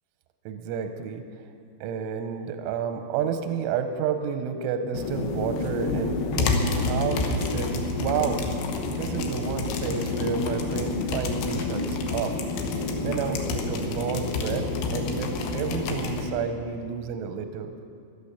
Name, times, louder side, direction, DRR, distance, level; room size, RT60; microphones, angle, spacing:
voice 1, 0.5-1.3 1.8-8.4 8.8-12.3 12.7-17.7, right 7 dB, 85° right, 7 dB, 3.0 m, -30 dB
sound 1, 4.9-16.3, left 3 dB, 75° left, 2.9 m, -28 dB
15.0 x 11.5 x 6.9 m, 2.3 s
omnidirectional pair, 5.8 m